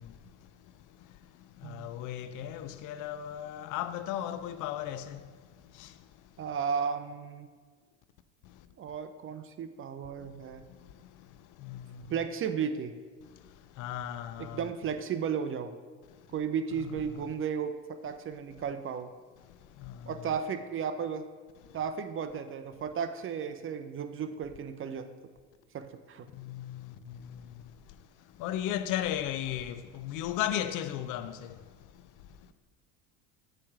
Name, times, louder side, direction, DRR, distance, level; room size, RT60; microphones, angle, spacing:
voice 1, 1.6-5.2 11.6-11.8 13.8-14.6 16.8-17.0 19.9-20.0 26.4-26.8 28.4-31.3, left 11 dB, 50° left, 0.5 m, -35 dB
voice 2, 6.4-7.5 8.8-10.6 12.1-12.9 14.4-15.7 16.3-19.1 20.1-21.2 21.7-25.1 25.7-26.3, right 7 dB, 35° right, 0.5 m, -34 dB
8.5 x 3.4 x 5.9 m
hypercardioid pair, 75°, 40 cm